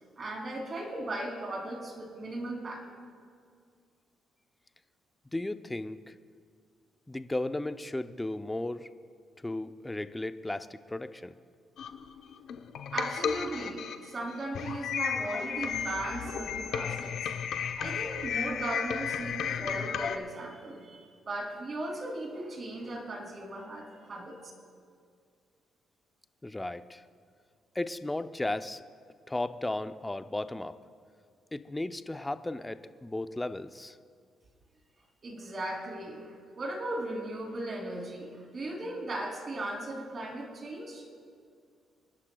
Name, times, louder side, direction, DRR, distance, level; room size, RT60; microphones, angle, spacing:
voice 1, 0.2-2.8 12.9-17.3 17.8-24.4 35.2-41.0, right 1 dB, 40° right, 1 dB, 2.9 m, -37 dB
voice 2, 5.3-6.1 7.1-8.9 9.4-11.3 26.4-27.0 27.7-28.8 29.3-30.7 31.5-34.0, left 2 dB, 15° left, 11 dB, 0.5 m, -35 dB
sound 1, 11.8-20.2, left 7 dB, 70° left, 0.7 m, -34 dB
26.0 x 11.5 x 2.3 m, 2.2 s
cardioid pair, 90°, 0 cm